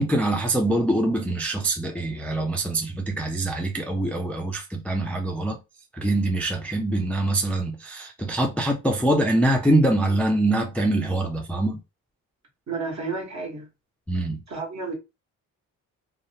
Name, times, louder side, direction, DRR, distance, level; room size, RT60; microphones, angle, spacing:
voice 1, 0.0-5.6 5.9-11.8 14.1-14.4, right 1 dB, 5° left, 0.3 m, -24 dB
voice 2, 12.7-13.7 14.5-14.9, right 4 dB, 55° right, 1.4 m, -31 dB
2.7 x 2.0 x 2.8 m
cardioid pair, 110°, 33 cm